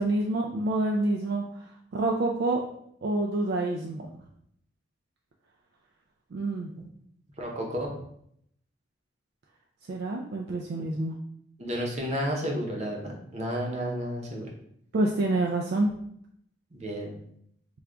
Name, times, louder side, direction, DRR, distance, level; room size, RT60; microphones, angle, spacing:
voice 1, 0.0-1.4 1.9-2.6 3.0-4.1 6.3-6.7 9.9-11.1 14.9-15.9, right 2 dB, 55° right, 0 dB, 0.3 m, -27 dB
voice 2, 7.4-7.9 11.6-14.5 16.7-17.1, equal, 35° right, 0 dB, 0.7 m, -32 dB
3.3 x 2.3 x 3.7 m, 0.71 s
head